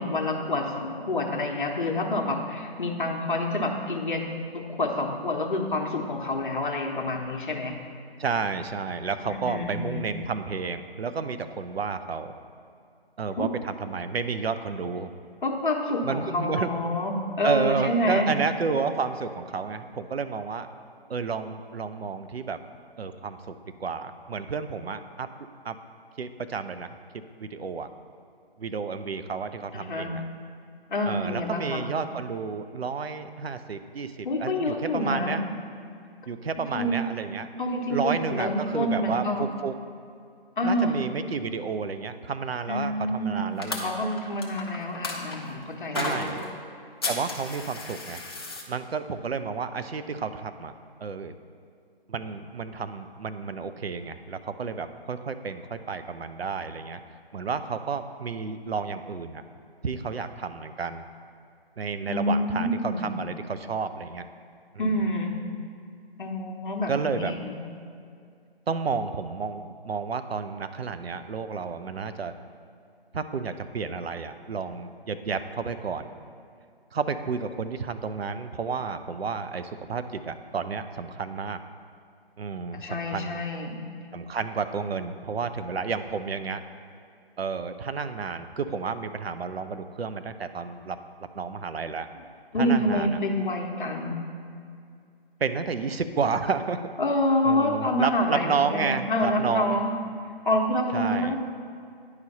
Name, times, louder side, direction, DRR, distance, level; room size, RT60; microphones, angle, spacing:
voice 1, 0.0-4.2 4.5-7.7 9.2-10.1 13.4-13.5 15.4-18.3 29.7-30.1 30.9-31.8 34.2-35.4 36.7-37.0 37.6-39.5 40.6-41.0 42.7-43.5 43.8-46.3 62.1-63.1 64.8-65.5 66.2-67.6 82.7-83.8 92.5-94.2 97.0-99.9 100.4-101.4, left 1 dB, 55° left, 2 dB, 1.0 m, -27 dB
voice 2, 8.2-12.3 13.2-15.1 16.0-16.7 17.4-20.7 21.1-22.6 23.0-25.3 25.6-25.8 26.2-27.0 27.4-27.9 28.6-30.2 31.0-35.4 36.3-37.5 37.9-39.7 40.6-44.0 45.9-46.4 47.1-48.2 48.7-50.7 51.0-51.3 52.1-57.0 57.3-59.4 59.8-61.1 61.8-64.3 64.7-65.1 66.9-67.3 68.7-72.3 73.1-76.1 76.9-81.6 82.4-83.4 84.1-86.6 87.4-91.0 91.3-92.1 92.6-93.2 95.4-96.9 97.4-99.8 100.9-101.4, right 5 dB, 75° right, 10 dB, 0.6 m, -31 dB
sound 1, 43.6-45.4 46.0-46.5 47.0-48.6, left 3 dB, 25° left, 0.6 m, -33 dB
9.7 x 4.9 x 4.1 m, 2.4 s
figure-of-eight pair, 150°, 31 cm